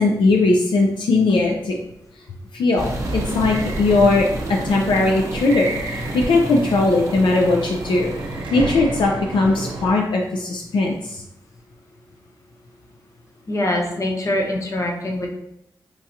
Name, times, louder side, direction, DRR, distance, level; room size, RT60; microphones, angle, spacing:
voice 1, 0.0-1.7 2.5-8.1 8.5-11.2, left 3 dB, 80° left, 0 dB, 0.4 m, -19 dB
sound 1, 2.8-8.4, right 1 dB, 40° right, 0.8 m, -32 dB
sound 2, 3.0-9.9, right 2 dB, 80° right, 0.7 m, -30 dB
voice 2, 13.5-15.3, left 1 dB, 40° left, 0 dB, 0.9 m, -23 dB
4.4 x 2.4 x 2.7 m, 0.81 s
cardioid pair, 50°, 8 cm